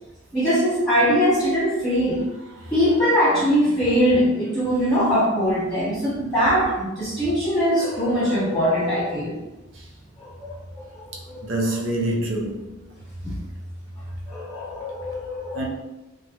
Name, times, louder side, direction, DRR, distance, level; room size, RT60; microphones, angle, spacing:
voice 1, 0.3-2.2 2.7-9.4 10.2-10.5 10.9-11.4 13.2-13.3 14.3-15.7, equal, 15° left, 1.0 m, -22 dB
voice 2, 11.4-12.7 15.5-15.7, right 1 dB, 70° right, 0.6 m, -25 dB
3.0 x 2.4 x 2.8 m
head